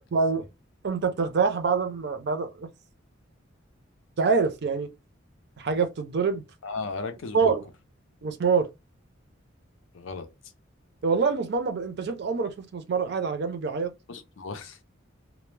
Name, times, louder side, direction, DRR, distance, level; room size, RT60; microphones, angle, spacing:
voice 1, 0.1-0.4 0.8-2.7 4.2-4.9 5.6-6.4 7.3-7.6 8.2-8.7 11.0-13.9, right 5 dB, 55° right, 0.4 m, -25 dB
voice 2, 6.6-7.5 9.9-10.3 14.1-14.8, left 4 dB, 75° left, 0.5 m, -35 dB
2.1 x 2.0 x 3.1 m
head